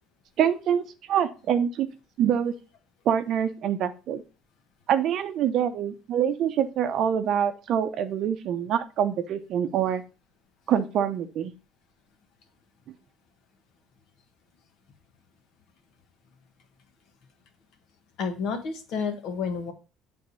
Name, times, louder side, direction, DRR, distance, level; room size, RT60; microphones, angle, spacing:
voice 1, 0.4-1.9 2.2-2.5 3.1-4.2 4.9-10.0 10.7-11.5, right 9 dB, 50° right, 9 dB, 0.7 m, -25 dB
voice 2, 18.2-19.7, left 5 dB, 55° left, 6 dB, 1.3 m, -30 dB
8.5 x 3.5 x 4.1 m, 0.32 s
cardioid pair, 155°, 0 cm